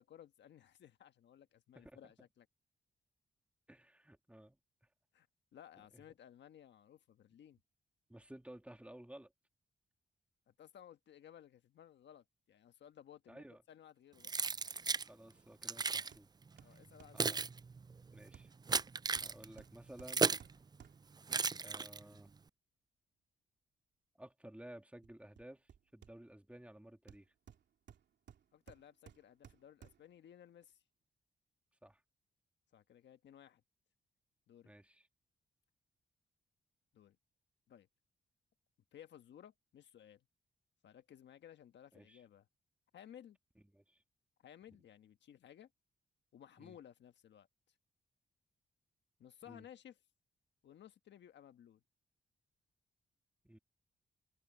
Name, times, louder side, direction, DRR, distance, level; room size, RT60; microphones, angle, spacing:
voice 1, 0.0-2.5 5.1-5.3 5.5-7.6 10.5-14.3 16.6-17.3 28.5-30.8 32.7-33.6 34.5-34.7 36.9-37.2 37.7-37.9 38.9-40.2 40.8-42.5 42.9-43.4 44.4-45.7 46.3-47.5 49.2-50.0 50.6-51.8, left 10 dB, 80° left, 1.4 m, -58 dB
voice 2, 1.7-2.1 3.7-4.6 5.9-6.0 8.1-9.3 13.3-13.6 15.0-16.3 16.6-16.8 17.1-17.6 18.1-18.5 19.2-20.3 21.6-22.3 24.2-27.3 31.8-32.0 34.6-35.1 41.9-42.2 43.7-44.0 46.6-46.8 49.5-49.7 53.4-53.6, right 1 dB, 5° right, 2.6 m, -55 dB
Keys jangling, 14.2-15.1 15.6-16.1 16.8-20.5 21.3-22.2, right 4 dB, 25° right, 0.4 m, -35 dB
Hammer, 16.1-16.3 16.6-17.2 18.3-21.2 25.0-26.5 27.1-30.2 30.6-30.7, right 8 dB, 75° right, 2.9 m, -61 dB
cardioid pair, 65°, 18 cm